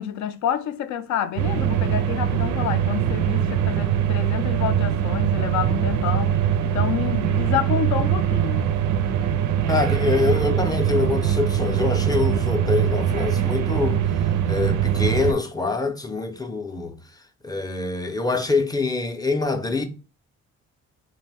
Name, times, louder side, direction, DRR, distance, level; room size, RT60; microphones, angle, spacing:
voice 1, 0.0-6.4 6.6-8.6, left 9 dB, 70° left, 0.5 m, -28 dB
sound 1, 1.4-15.3, right 9 dB, 80° right, 0.5 m, -22 dB
voice 2, 9.7-14.1 14.5-16.9 17.4-19.8, left 3 dB, 15° left, 0.5 m, -25 dB
2.5 x 2.1 x 3.2 m
cardioid pair, 90°, 30 cm